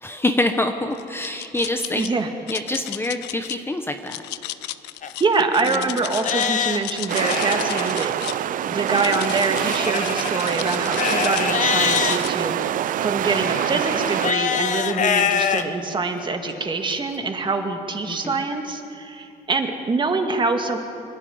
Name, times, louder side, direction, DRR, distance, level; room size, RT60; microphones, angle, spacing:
voice 1, 0.0-2.0 2.5-4.2 18.1-18.4, left 2 dB, 15° left, 6 dB, 1.0 m, -25 dB
sound 1, 0.9-2.1 2.5-3.6 4.1-6.5 6.7-8.4 8.9-11.5 11.9-12.3, left 16 dB, 90° left, 0.6 m, -34 dB
voice 2, 1.9-2.3 5.2-20.8, right 3 dB, 30° right, 5 dB, 2.0 m, -25 dB
Livestock farm animals working animals, 5.0-5.1 5.7-5.8 6.2-7.9 9.6-12.2 13.3-15.6 16.2-16.3 16.9-17.0, left 7 dB, 50° left, 1.1 m, -24 dB
sound 2, 7.1-14.3, right 11 dB, 55° right, 0.5 m, -25 dB
25.5 x 11.0 x 9.4 m, 2.8 s
cardioid pair, 110°, 17 cm